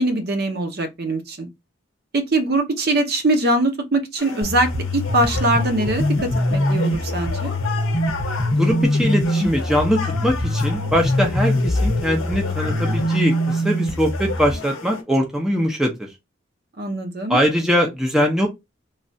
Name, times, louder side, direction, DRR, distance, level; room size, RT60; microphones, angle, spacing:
voice 1, 0.0-1.5 2.1-7.5 16.8-17.4, right 2 dB, 50° right, 0.6 m, -22 dB
sound 1, 4.2-15.0, left 4 dB, 90° left, 0.7 m, -33 dB
sound 2, 4.4-14.5, left 1 dB, 50° left, 0.6 m, -23 dB
voice 2, 8.5-15.9 17.3-18.5, equal, ahead, 0.5 m, -21 dB
3.1 x 2.3 x 2.6 m
head